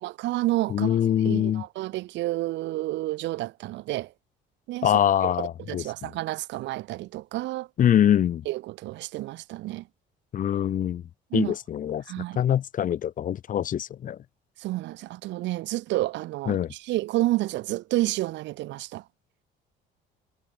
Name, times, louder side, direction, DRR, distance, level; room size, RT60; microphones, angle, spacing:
voice 1, 0.0-1.0 1.2-4.1 4.7-4.9 5.2-7.7 8.5-9.9 11.3-11.5 12.1-12.4 14.6-19.0, right 17 dB, 70° right, 0.7 m, -30 dB
voice 2, 0.7-1.6 4.8-6.1 7.8-8.4 10.3-11.0 11.3-12.0 12.4-14.2 16.5-16.7, left 10 dB, 45° left, 0.9 m, -24 dB
cardioid pair, 125°, 19 cm